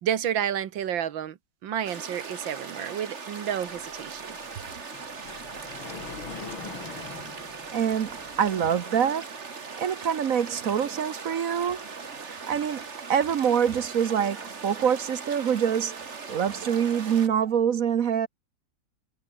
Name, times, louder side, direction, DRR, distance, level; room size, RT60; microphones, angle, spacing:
voice 1, 0.0-4.4, right 9 dB, 75° right, 1.9 m, -30 dB
sound 1, 1.8-17.3, right 5 dB, 35° right, 2.1 m, -40 dB
Sliding door, 3.7-8.6, left 5 dB, 90° left, 3.6 m, -44 dB
voice 2, 7.7-9.3 9.8-11.8 12.2-12.8 13.1-15.9 16.3-18.3, right 8 dB, 55° right, 1.1 m, -25 dB
omnidirectional pair, 2.1 m